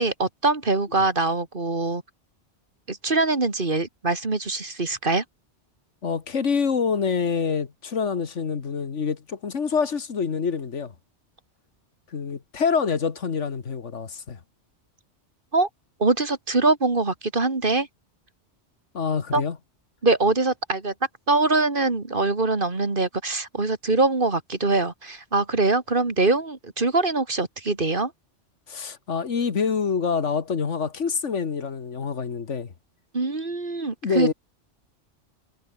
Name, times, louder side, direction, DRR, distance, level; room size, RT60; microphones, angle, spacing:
voice 1, 0.0-2.0 2.9-5.2 15.5-15.7 16.0-17.9 19.3-19.4 20.0-20.9 21.3-28.1 33.1-34.3, right 3 dB, 45° right, 2.5 m, -23 dB
voice 2, 6.0-10.9 12.1-14.4 18.9-19.6 28.7-32.7 34.0-34.3, left 6 dB, 85° left, 1.9 m, -26 dB
omnidirectional pair, 1.2 m